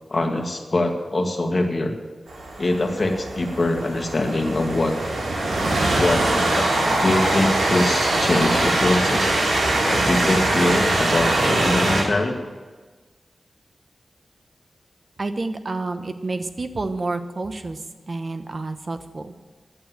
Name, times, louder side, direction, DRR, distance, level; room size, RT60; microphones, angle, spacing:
voice 1, 0.1-1.9 2.6-5.0 5.9-9.4 9.8-12.4, left 2 dB, 45° left, 3 dB, 2.0 m, -23 dB
Train, 2.3-12.0, right 2 dB, 80° right, 3.6 m, -22 dB
voice 2, 15.2-17.8 18.1-19.3, right 3 dB, 50° right, 8 dB, 1.1 m, -29 dB
11.0 x 8.8 x 9.3 m, 1.3 s
wide cardioid pair, 75°, 0 cm